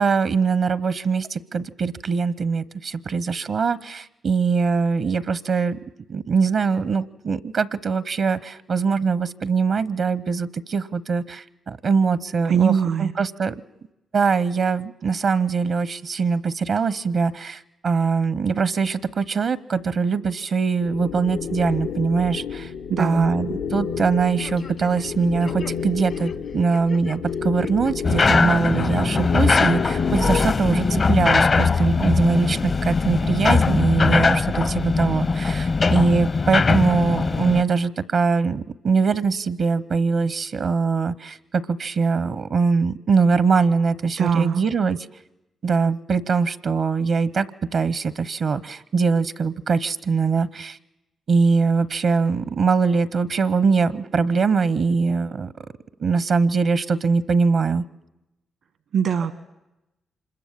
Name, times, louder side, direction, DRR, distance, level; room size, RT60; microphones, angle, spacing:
voice 1, 0.0-5.8 6.1-12.7 13.0-13.6 14.1-22.7 23.0-45.0 45.6-47.5 47.7-50.8 51.3-55.5 56.0-57.8, right 5 dB, 60° right, 16 dB, 0.8 m, -22 dB
voice 2, 12.4-13.1 22.9-23.4 44.2-44.6 58.9-59.3, right 7 dB, 80° right, 10 dB, 1.3 m, -22 dB
sound 1, 20.8-31.2, left 6 dB, 85° left, 0.8 m, -31 dB
sound 2, 24.4-25.1 25.4-27.2 27.6-27.9 28.4-29.0 29.4-30.2 30.7-31.3 31.7-31.9 32.5-33.1 33.4-33.5, left 6 dB, 65° left, 1.3 m, -42 dB
sound 3, 28.0-37.6, left 4 dB, 45° left, 0.8 m, -20 dB
26.0 x 21.5 x 7.4 m, 0.93 s
supercardioid pair, 50°, 0 cm